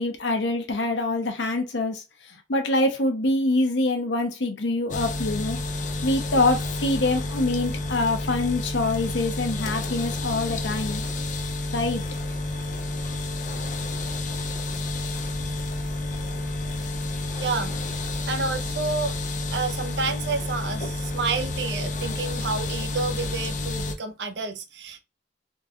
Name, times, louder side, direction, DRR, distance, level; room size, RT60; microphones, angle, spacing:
voice 1, 0.0-2.0 2.3-5.6 6.0-11.0 11.7-12.0, left 2 dB, 80° left, 0.8 m, -25 dB
sound 1, 4.9-24.0, left 2 dB, 45° left, 0.5 m, -30 dB
voice 2, 17.3-17.8 18.3-19.1 19.5-25.0, right 4 dB, 70° right, 0.6 m, -29 dB
3.7 x 2.4 x 2.8 m
head